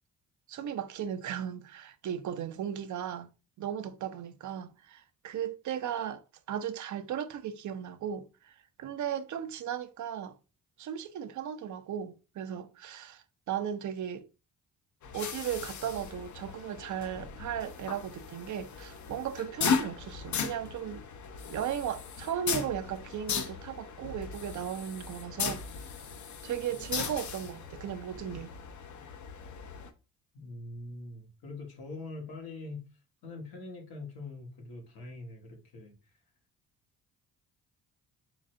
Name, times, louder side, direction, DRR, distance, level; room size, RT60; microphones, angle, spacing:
voice 1, 0.5-3.3 3.6-10.4 10.8-14.3 15.1-21.0 21.5-25.6 26.4-28.5, right 9 dB, 55° right, 0.6 m, -36 dB
sound 1, 15.0-29.9, left 6 dB, 55° left, 0.7 m, -37 dB
voice 2, 30.3-32.8 33.2-35.9, left 2 dB, 80° left, 1.5 m, -43 dB
3.9 x 3.2 x 2.5 m
supercardioid pair, 65°, 36 cm